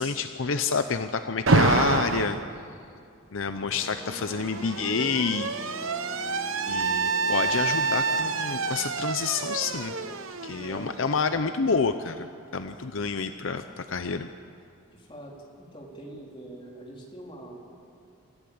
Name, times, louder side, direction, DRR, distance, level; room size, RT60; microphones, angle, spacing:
voice 1, 0.0-2.4 3.3-5.5 5.9-6.0 6.5-9.9 10.4-14.3, left 5 dB, 70° left, 10 dB, 0.7 m, -28 dB
Alarm, 1.5-2.4 3.6-11.3, right 3 dB, 75° right, 1.0 m, -27 dB
sound 1, 3.7-10.2, left 2 dB, 5° left, 4.8 m, -44 dB
voice 2, 10.5-10.9 12.9-13.1 14.9-17.6, right 1 dB, 25° left, -2 dB, 3.8 m, -44 dB
27.5 x 15.0 x 8.6 m, 2.5 s
head